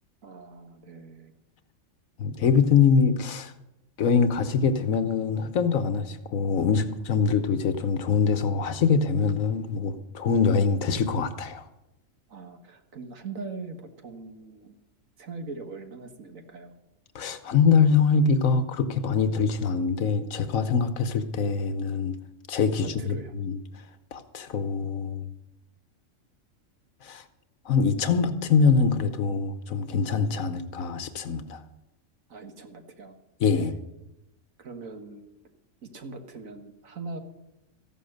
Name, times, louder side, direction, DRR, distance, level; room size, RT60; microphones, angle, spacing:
voice 1, 0.2-1.3 12.3-14.8 15.2-16.7 22.8-23.3 32.3-33.1 33.6-33.8 34.6-35.3 35.8-37.2, right 3 dB, 75° right, 1.9 m, -41 dB
voice 2, 2.2-3.5 4.0-11.6 17.1-22.2 22.5-23.6 24.1-25.3 27.0-27.2 27.7-31.6 33.4-33.7, left 5 dB, 80° left, 1.4 m, -24 dB
14.5 x 11.5 x 6.6 m
omnidirectional pair, 1.4 m